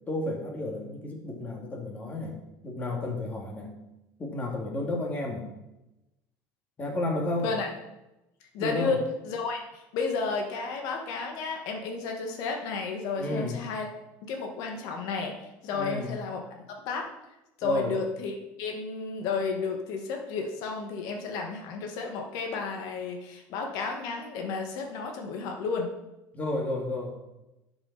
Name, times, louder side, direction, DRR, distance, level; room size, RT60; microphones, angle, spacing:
voice 1, 0.1-3.8 4.2-5.5 6.8-7.5 8.6-9.0 13.2-13.6 15.7-16.1 17.6-17.9 26.3-27.2, left 1 dB, 25° left, 0 dB, 2.5 m, -32 dB
voice 2, 7.4-7.7 8.5-13.9 14.3-16.4 16.9-17.0 17.6-25.9, left 4 dB, 70° left, 2 dB, 2.0 m, -32 dB
11.0 x 7.0 x 4.3 m, 0.94 s
cardioid pair, 145°, 7 cm